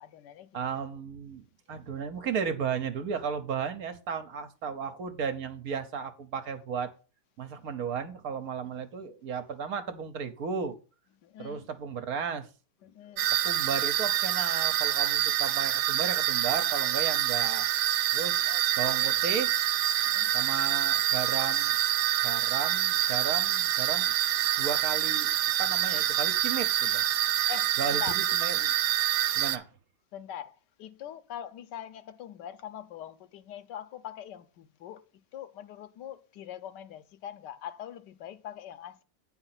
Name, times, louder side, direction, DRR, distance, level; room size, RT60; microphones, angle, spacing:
voice 1, 0.0-0.8 8.8-8.9 11.2-11.7 12.8-13.3 18.4-19.1 20.0-20.3 27.5-28.1 30.1-35.1 35.3-39.0, left 10 dB, 90° left, 1.4 m, -43 dB
voice 2, 0.5-1.4 1.7-6.9 7.4-10.8 11.4-12.5 13.4-17.7 18.1-19.5 20.3-21.8 22.2-24.1 24.6-25.3 25.6-27.0 27.8-28.7 29.4-29.7, right 6 dB, 65° right, 1.3 m, -34 dB
sound 1, 13.2-29.6, right 12 dB, 85° right, 1.2 m, -26 dB
8.8 x 4.4 x 5.8 m
omnidirectional pair, 1.8 m